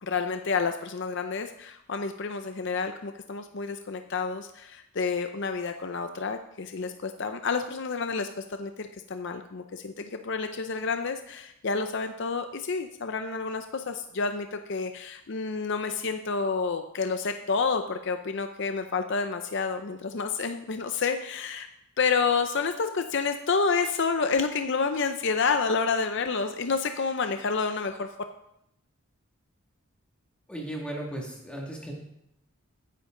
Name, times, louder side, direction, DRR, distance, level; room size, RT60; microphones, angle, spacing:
voice 1, 0.0-21.7 22.0-28.1, left 4 dB, 55° left, 7 dB, 0.6 m, -29 dB
voice 2, 30.5-31.9, right 1 dB, 5° left, -2 dB, 2.0 m, -36 dB
13.5 x 9.7 x 3.8 m, 0.80 s
head